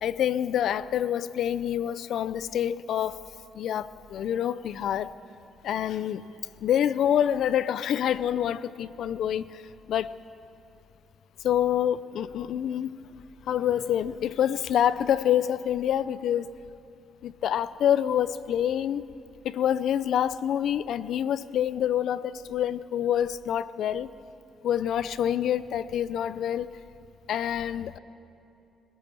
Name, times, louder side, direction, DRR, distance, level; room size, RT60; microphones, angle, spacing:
voice 1, 0.0-3.2 3.5-5.1 5.6-6.2 6.6-9.6 9.9-10.1 11.4-13.0 13.5-16.5 17.2-19.0 19.4-24.1 24.6-26.7 27.3-28.0, left 10 dB, 70° left, 16 dB, 0.6 m, -27 dB
27.0 x 17.5 x 7.0 m, 2.7 s
cardioid pair, 90°, 0 cm